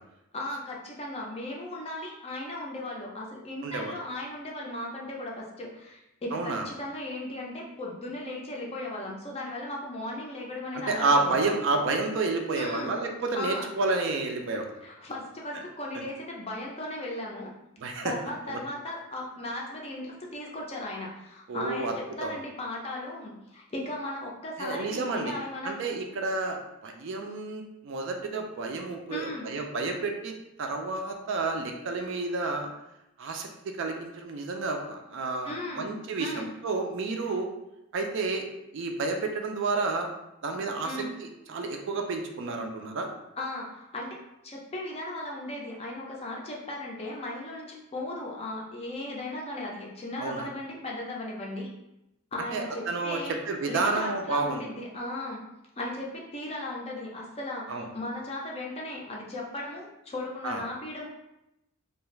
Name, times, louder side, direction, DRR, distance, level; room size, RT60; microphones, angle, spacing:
voice 1, 0.3-11.4 12.5-12.9 13.3-13.7 14.8-17.5 18.0-25.8 29.1-29.5 35.4-35.9 36.2-36.5 37.2-37.3 40.8-41.1 43.4-51.7 52.3-53.4 53.7-55.4 55.8-61.1, left 1 dB, 25° left, -2 dB, 0.4 m, -36 dB
voice 2, 3.6-4.0 6.3-6.6 10.9-14.7 17.8-18.1 18.5-18.6 21.5-21.9 22.2-22.3 24.6-25.3 25.6-30.3 30.6-32.7 33.2-36.3 36.6-37.5 37.9-38.5 38.7-40.1 40.4-43.1 50.2-50.5 52.5-54.6 57.7-57.9 60.4-60.6, right 3 dB, 55° right, 3 dB, 0.4 m, -30 dB
2.5 x 2.3 x 3.1 m, 0.88 s
head